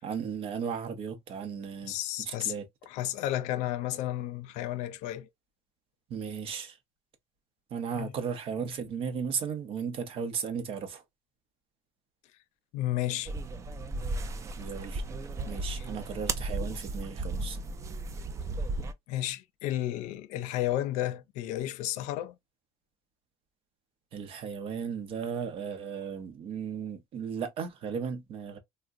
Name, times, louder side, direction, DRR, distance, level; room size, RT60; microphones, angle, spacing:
voice 1, 0.0-1.9 2.3-2.7 6.1-6.8 7.7-11.0 14.6-15.0 15.4-17.6 24.1-28.6, right 6 dB, 50° right, 0.7 m, -35 dB
voice 2, 1.8-2.5 2.9-5.3 7.9-8.1 12.7-13.3 15.8-15.9 19.1-22.4, left 13 dB, 85° left, 0.5 m, -32 dB
sound 1, 13.3-18.9, right 2 dB, 25° right, 0.3 m, -35 dB
3.6 x 2.1 x 2.4 m
cardioid pair, 150°, 12 cm